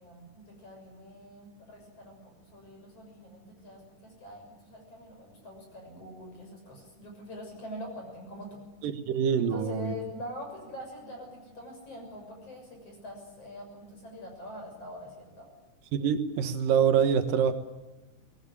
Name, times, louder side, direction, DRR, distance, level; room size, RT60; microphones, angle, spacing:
voice 1, 0.0-8.6 9.4-15.5, left 1 dB, 45° left, 2 dB, 7.6 m, -44 dB
voice 2, 8.8-9.9 15.9-17.5, right 7 dB, 90° right, 9 dB, 3.0 m, -25 dB
23.0 x 19.0 x 9.8 m, 1.1 s
omnidirectional pair, 3.8 m